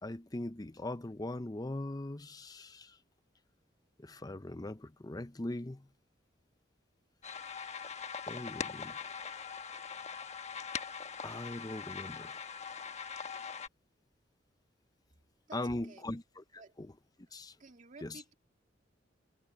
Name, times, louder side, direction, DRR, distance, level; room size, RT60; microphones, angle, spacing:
voice 1, 0.0-2.9 4.0-5.8 8.3-9.0 11.2-12.4 15.5-16.4 16.8-16.9 17.3-17.5 18.0-18.2, left 1 dB, 20° left, 0.7 m, -40 dB
sound 1, 7.2-13.7, left 6 dB, 40° left, 1.2 m, -42 dB
voice 2, 15.5-16.1 16.6-16.8 17.6-18.3, right 3 dB, 45° right, 2.2 m, -53 dB
head